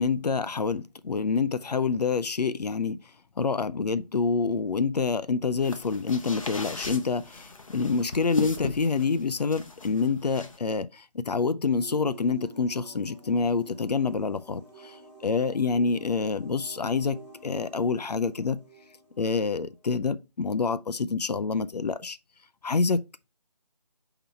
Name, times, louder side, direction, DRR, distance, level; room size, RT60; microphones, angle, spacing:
voice 1, 0.0-3.0 3.4-18.6 19.2-22.2 22.6-23.0, left 4 dB, 70° left, 0.5 m, -27 dB
sound 1, 5.6-10.6, left 3 dB, 50° left, 0.9 m, -38 dB
sound 2, 11.7-20.1, right 4 dB, 10° right, 1.8 m, -49 dB
8.5 x 3.0 x 4.0 m
figure-of-eight pair, 175°, 21 cm